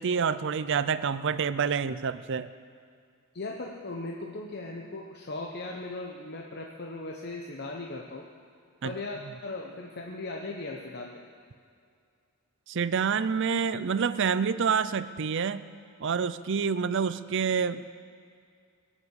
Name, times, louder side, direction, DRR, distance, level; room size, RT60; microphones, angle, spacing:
voice 1, 0.0-2.5 8.8-8.9 12.7-15.7 16.0-17.9, right 6 dB, 55° right, 14 dB, 0.5 m, -27 dB
voice 2, 3.3-8.2 8.8-11.2, left 2 dB, 45° left, 0 dB, 1.0 m, -38 dB
21.5 x 7.4 x 8.1 m, 2.3 s
head